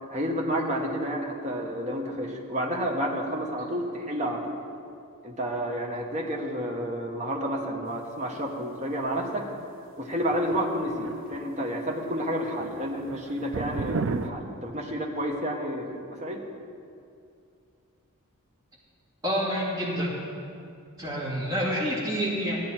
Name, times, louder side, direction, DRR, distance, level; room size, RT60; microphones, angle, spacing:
voice 1, 0.0-4.6 5.2-9.4 10.0-16.4, equal, 30° right, 0 dB, 1.2 m, -30 dB
sound 1, 10.1-11.6 11.9-12.3 12.6-14.3, right 4 dB, 60° right, 0.5 m, -33 dB
voice 2, 19.2-20.1 21.0-22.6, equal, 15° right, -7 dB, 2.4 m, -28 dB
14.5 x 9.3 x 4.4 m, 2.5 s
head